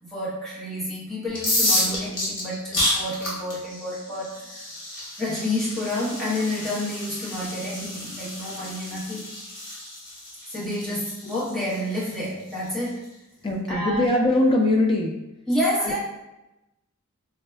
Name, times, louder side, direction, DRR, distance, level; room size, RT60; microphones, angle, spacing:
voice 1, 0.0-4.7 5.2-9.3 10.5-13.1 13.7-14.0 15.5-16.0, left 1 dB, ahead, -8 dB, 0.8 m, -29 dB
sound 1, 1.3-13.0, left 1 dB, 60° left, 1.2 m, -30 dB
voice 2, 13.4-15.1 15.8-16.0, left 1 dB, 25° left, 1 dB, 0.4 m, -21 dB
3.5 x 2.1 x 3.3 m, 0.95 s
head